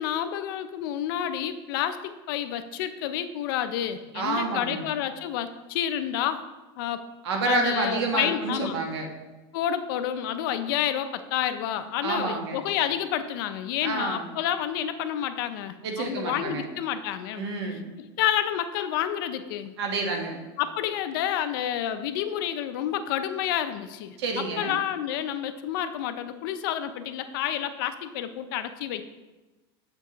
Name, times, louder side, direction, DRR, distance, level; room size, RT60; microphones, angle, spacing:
voice 1, 0.0-6.4 6.8-7.0 7.4-8.8 9.5-17.4 18.0-19.7 20.6-29.0, left 10 dB, 60° left, 10 dB, 0.5 m, -29 dB
voice 2, 4.1-4.9 7.2-9.1 12.0-12.6 13.8-14.3 15.8-16.7 17.4-17.9 19.8-20.4 24.2-24.8, right 3 dB, 90° right, 2 dB, 1.3 m, -29 dB
7.5 x 5.8 x 2.9 m, 1.1 s
supercardioid pair, 170°, 13 cm